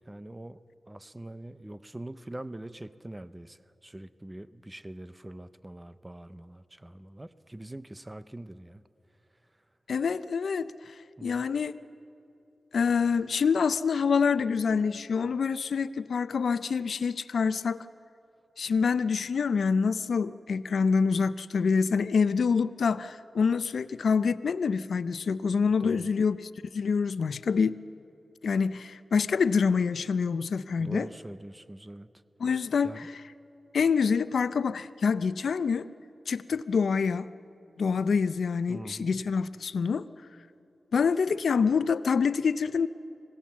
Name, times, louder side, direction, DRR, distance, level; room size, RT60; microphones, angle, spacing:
voice 1, 0.1-8.8 11.2-11.5 25.8-26.1 30.8-32.1 32.8-33.1 38.7-39.1, right 1 dB, 15° right, 13 dB, 0.5 m, -43 dB
voice 2, 9.9-10.9 11.2-11.8 12.7-17.8 18.6-26.4 26.7-27.8 28.4-31.1 32.4-33.1 33.7-35.9 36.3-37.3 37.8-40.1 40.9-42.9, left 5 dB, 85° left, 14 dB, 0.5 m, -26 dB
26.0 x 17.5 x 7.3 m, 2.7 s
wide cardioid pair, 140°, 0 cm